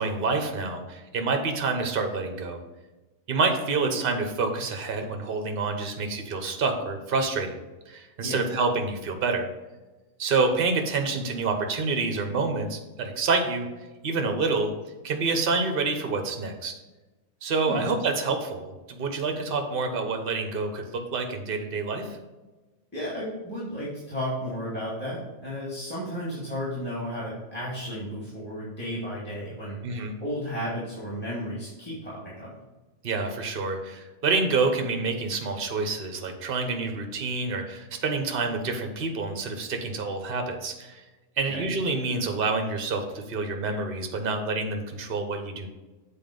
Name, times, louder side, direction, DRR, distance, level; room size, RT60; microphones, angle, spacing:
voice 1, 0.0-2.6 3.3-7.6 7.9-9.5 10.2-13.7 14.0-14.7 15.0-16.7 17.4-22.2 29.8-30.1 33.0-41.0 41.4-45.7, right 3 dB, 45° right, 4 dB, 1.1 m, -27 dB
voice 2, 22.9-32.5 41.5-41.7, equal, 5° left, -8 dB, 2.2 m, -33 dB
7.6 x 4.3 x 5.3 m, 1.2 s
omnidirectional pair, 1.4 m